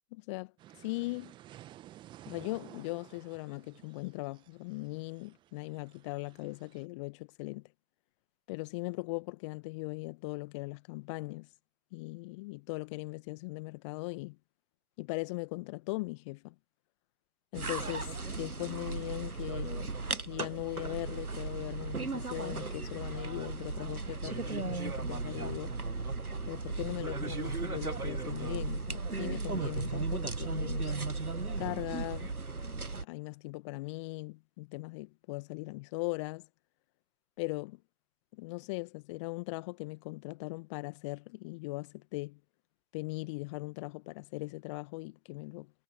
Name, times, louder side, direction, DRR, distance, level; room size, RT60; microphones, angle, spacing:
voice 1, 0.1-0.5 0.8-1.4 2.3-7.7 8.5-11.5 11.9-14.4 15.0-16.5 17.5-19.9 20.2-25.8 26.4-30.9 31.6-32.3 33.0-36.5 37.4-37.8 38.3-42.4 42.9-45.7, left 24 dB, 20° left, 1.7 m, -39 dB
sound 1, 0.6-6.9, right 13 dB, 10° right, 1.5 m, -54 dB
sound 2, 17.5-33.0, right 3 dB, 85° right, 1.5 m, -36 dB
figure-of-eight pair, 135°, 43 cm